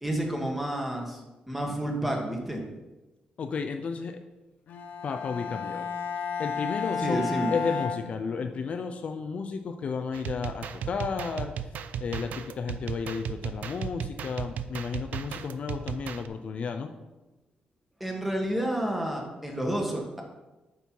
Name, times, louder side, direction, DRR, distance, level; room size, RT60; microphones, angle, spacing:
voice 1, 0.0-2.6 7.0-7.5 18.0-20.2, right 1 dB, 5° right, 0 dB, 1.5 m, -30 dB
voice 2, 3.4-4.2 5.0-5.9 6.4-11.5 12.0-16.9, left 5 dB, 50° left, 6 dB, 0.5 m, -33 dB
Bowed string instrument, 4.7-8.8, left 5 dB, 80° left, 0.8 m, -33 dB
sound 1, 10.1-16.3, right 8 dB, 70° right, 0.4 m, -36 dB
8.1 x 5.5 x 4.6 m, 1.1 s
cardioid pair, 130°, 3 cm